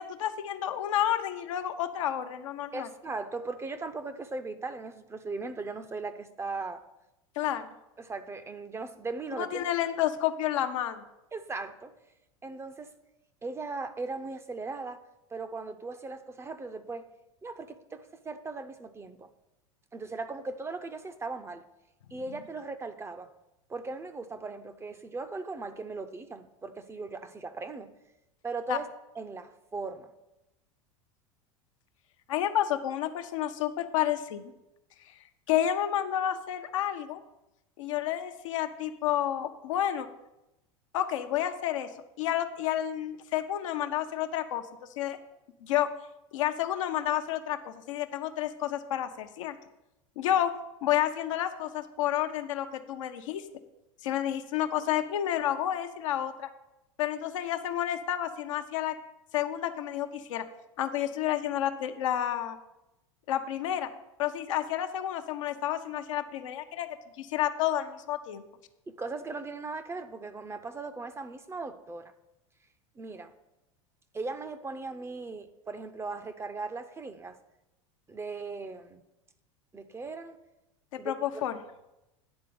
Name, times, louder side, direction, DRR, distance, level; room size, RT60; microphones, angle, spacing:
voice 1, 0.0-2.9 7.4-7.7 9.4-11.0 28.7-28.8 32.3-34.5 35.5-37.2 37.8-40.1 40.9-41.9 42.2-44.6 45.0-45.2 45.6-45.9 46.3-49.6 50.2-50.5 50.8-53.4 54.0-56.5 57.0-59.0 59.3-60.5 60.8-62.6 63.3-63.9 64.2-66.9 67.2-68.4 80.9-81.6, left 11 dB, 75° left, 7 dB, 0.7 m, -30 dB
voice 2, 2.7-6.8 8.0-9.6 11.3-11.9 12.4-12.9 13.4-15.0 15.3-17.1 17.4-19.3 19.9-21.7 22.1-23.3 23.7-27.9 28.4-28.9 29.2-30.1 50.3-50.4 68.9-72.1 73.0-73.3 74.1-77.4 78.1-79.0 79.7-80.4 81.0-81.4, right 3 dB, 15° right, 10 dB, 0.5 m, -38 dB
9.7 x 3.8 x 6.8 m, 0.94 s
hypercardioid pair, 95°, 16 cm